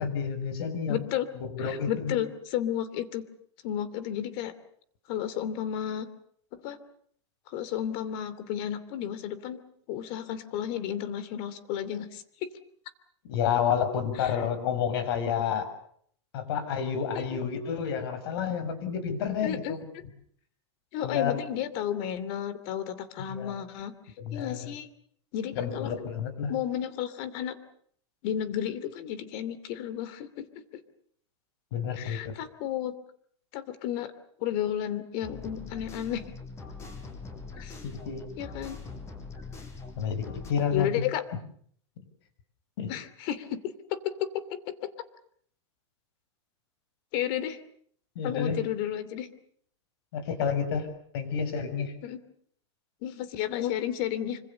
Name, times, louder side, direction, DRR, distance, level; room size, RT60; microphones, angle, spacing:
voice 1, 0.0-1.0 1.4-2.1 13.3-15.7 16.3-19.9 21.0-21.4 23.2-23.5 24.2-24.7 25.5-26.5 31.7-32.3 38.0-38.2 40.0-41.0 42.8-42.9 48.1-48.6 50.1-50.9 51.1-51.9, left 7 dB, 60° left, 11 dB, 6.6 m, -30 dB
voice 2, 0.9-1.3 1.6-3.2 3.6-4.5 5.1-6.1 6.6-6.8 7.5-9.6 9.9-12.2 14.2-14.3 17.1-17.4 19.4-19.7 20.9-23.9 24.3-24.9 25.3-25.9 26.5-27.5 28.2-30.8 32.0-33.0 33.5-34.1 34.4-36.2 37.6-37.8 38.4-38.8 40.7-41.2 42.9-44.9 47.1-47.6 48.2-49.3 52.0-52.2 53.0-54.4, left 10 dB, 45° left, 14 dB, 2.8 m, -32 dB
sound 1, 35.2-40.5, left 3 dB, 20° left, 5.7 m, -42 dB
26.0 x 25.5 x 6.9 m, 0.63 s
supercardioid pair, 155°, 15 cm